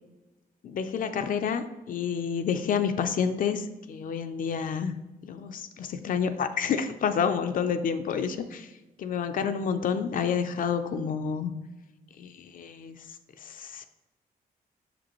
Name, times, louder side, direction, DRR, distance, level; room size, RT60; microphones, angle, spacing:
voice 1, 0.6-4.9 5.2-8.7 9.0-11.5 12.2-13.0 13.4-13.8, left 7 dB, 65° left, 8 dB, 0.5 m, -29 dB
6.2 x 5.1 x 3.0 m, 1.1 s
cardioid pair, 105°, 15 cm